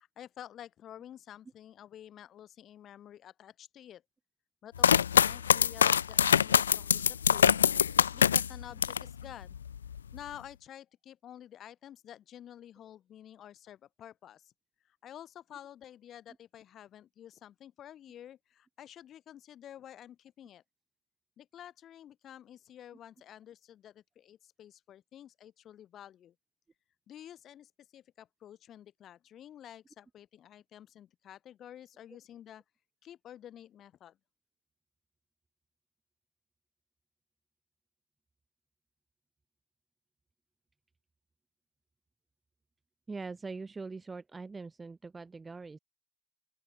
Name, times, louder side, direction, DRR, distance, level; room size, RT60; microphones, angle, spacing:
voice 1, 0.0-4.0 4.6-7.6 7.9-9.6 10.1-14.5 14.8-20.6 21.4-26.3 27.1-32.6 33.0-34.2, left 11 dB, 30° left, 4.7 m, -50 dB
sound 1, 4.8-9.1 9.5-10.2, left 8 dB, 65° left, 0.6 m, -24 dB
voice 2, 43.1-45.8, right 4 dB, 10° right, 1.0 m, -42 dB
open air
figure-of-eight pair, 90°, 0 cm